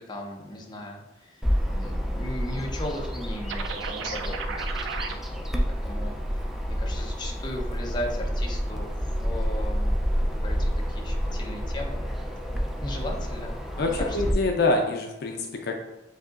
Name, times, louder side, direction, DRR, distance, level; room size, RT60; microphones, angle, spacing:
voice 1, 0.1-4.8 5.1-12.0 12.8-14.2, left 1 dB, 25° left, 0 dB, 0.8 m, -37 dB
Bird vocalization bird call bird song, 1.4-14.3, equal, ahead, 0.4 m, -29 dB
sound 1, 3.5-5.1, right 5 dB, 85° right, 0.4 m, -34 dB
voice 2, 13.8-15.8, left 2 dB, 60° left, 3 dB, 0.4 m, -25 dB
7.6 x 2.8 x 2.5 m, 1.0 s
head